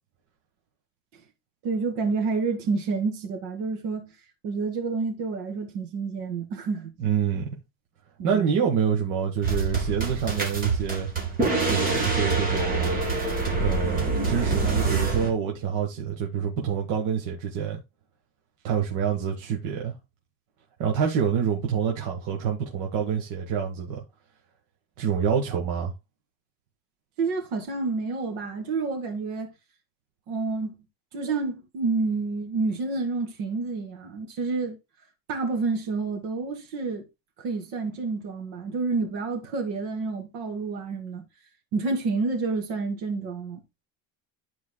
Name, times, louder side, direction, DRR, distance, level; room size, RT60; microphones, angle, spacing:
voice 1, 1.6-4.1 4.4-6.9 8.2-8.7 27.2-29.5 30.3-30.8 31.1-34.8 35.3-37.0 37.4-41.2 41.7-43.6, right 4 dB, 65° right, 2.2 m, -29 dB
voice 2, 7.0-7.6 8.2-11.1 11.6-13.0 13.6-17.8 18.6-19.9 20.8-24.0 25.0-25.9, right 7 dB, 45° right, 1.4 m, -27 dB
sound 1, 9.4-15.3, right 4 dB, 20° right, 2.1 m, -25 dB
12.0 x 4.6 x 2.2 m
cardioid pair, 170°, 43 cm